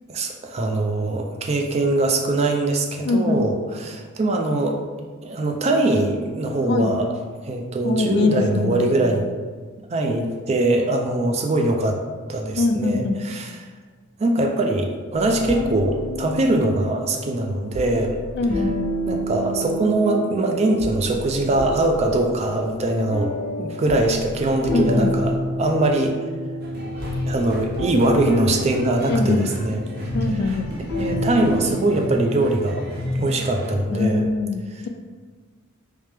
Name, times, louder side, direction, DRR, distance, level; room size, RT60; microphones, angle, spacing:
voice 1, 0.1-4.8 5.2-7.1 7.4-9.3 9.9-12.0 12.3-13.7 14.2-18.2 19.1-26.2 27.3-29.8 30.4-30.6 31.0-32.8 33.1-34.3 34.7-34.8, right 2 dB, 30° right, 3 dB, 0.3 m, -22 dB
voice 2, 3.0-3.4 6.7-6.9 7.8-9.0 12.6-13.2 18.4-18.7 24.7-25.1 29.1-29.5 30.1-30.7 33.9-34.9, left 3 dB, 50° left, 5 dB, 0.3 m, -22 dB
sound 1, 15.1-31.7, equal, 85° left, 0.9 m, -30 dB
sound 2, 26.6-33.9, left 1 dB, 45° right, 0.8 m, -30 dB
3.3 x 3.2 x 3.3 m, 1.5 s
head